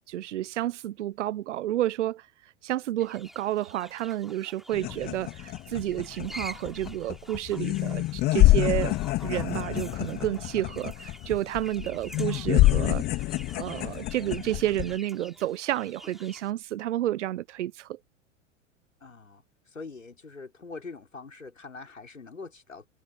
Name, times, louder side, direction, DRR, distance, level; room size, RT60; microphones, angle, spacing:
voice 1, 0.1-2.3 2.6-9.0 9.2-13.2 13.5-18.0, right 13 dB, 70° right, 0.9 m, -30 dB
sound 1, 3.0-16.5, equal, ahead, 4.7 m, -48 dB
sound 2, 4.7-15.0, left 18 dB, 25° left, 0.5 m, -26 dB
voice 2, 19.0-22.9, left 4 dB, 90° left, 5.4 m, -43 dB
figure-of-eight pair, 90°, 38 cm